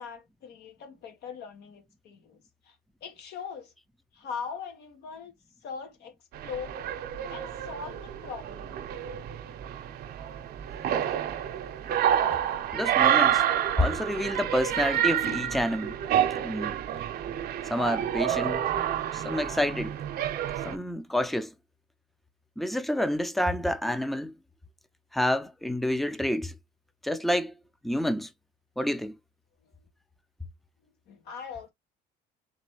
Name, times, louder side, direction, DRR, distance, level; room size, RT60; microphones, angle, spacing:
voice 1, 0.0-2.8 3.0-3.7 4.1-5.3 5.6-6.2 6.4-6.8 7.3-8.8 30.8-31.7, left 6 dB, 75° left, 1.3 m, -41 dB
sound 1, 6.3-20.8, right 10 dB, 65° right, 0.7 m, -29 dB
voice 2, 12.7-13.4 13.8-16.0 16.4-16.7 17.7-18.6 19.1-20.0 20.7-21.5 22.6-24.3 25.1-26.6 27.0-27.5 27.8-28.3 28.8-29.1, left 1 dB, ahead, 0.5 m, -28 dB
4.1 x 3.2 x 3.0 m
cardioid pair, 110°, 17 cm